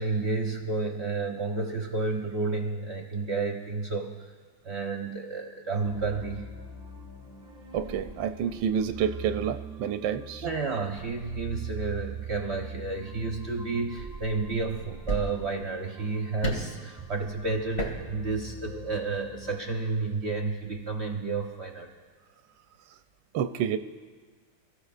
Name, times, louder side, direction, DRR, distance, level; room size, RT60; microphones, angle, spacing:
voice 1, 0.0-4.1 4.6-6.4 10.4-21.9, right 3 dB, 45° right, 1 dB, 1.0 m, -31 dB
sound 1, 5.8-19.5, right 4 dB, 5° right, 1.4 m, -42 dB
voice 2, 7.7-10.5 23.3-23.8, right 8 dB, 75° right, 8 dB, 1.2 m, -29 dB
Banging Wall, 13.4-13.6 14.5-14.6 15.1-15.6 16.4-16.8 17.7-18.1 18.3-18.4, right 1 dB, 30° left, 2.3 m, -31 dB
27.5 x 15.0 x 2.5 m, 1.5 s
omnidirectional pair, 2.1 m